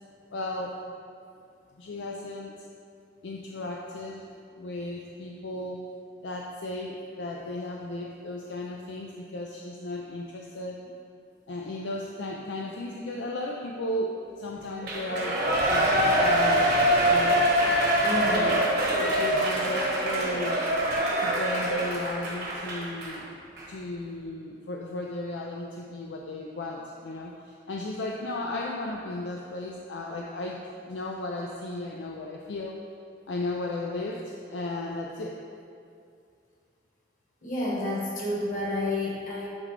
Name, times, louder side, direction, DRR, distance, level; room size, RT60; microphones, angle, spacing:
voice 1, 0.3-0.9 1.8-2.5 3.2-4.2 4.6-5.8 6.2-10.8 11.5-15.4 15.7-17.5 18.2-18.6 18.9-20.6 21.2-23.3 23.7-30.6 30.9-32.8 33.3-35.4, left 2 dB, 65° left, -1 dB, 0.4 m, -35 dB
Shout / Cheering, 14.8-23.2 23.6-23.7, right 1 dB, 55° right, 1.2 m, -24 dB
voice 2, 18.0-18.6 37.4-39.5, left 1 dB, 40° left, -5 dB, 1.5 m, -30 dB
9.6 x 3.8 x 3.3 m, 2.4 s
head